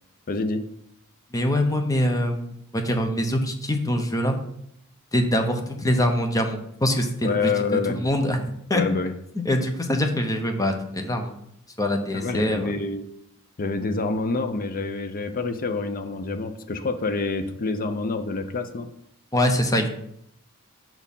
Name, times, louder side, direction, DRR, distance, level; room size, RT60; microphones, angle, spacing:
voice 1, 0.3-0.6 7.2-8.0 8.7-9.1 12.1-13.1 13.6-18.9, left 4 dB, 40° left, 8 dB, 0.5 m, -27 dB
voice 2, 1.3-4.4 5.1-8.4 8.7-8.8 9.4-11.3 11.8-12.7 19.3-19.9, left 1 dB, 15° left, 5 dB, 0.8 m, -24 dB
6.0 x 4.5 x 5.3 m, 0.73 s
head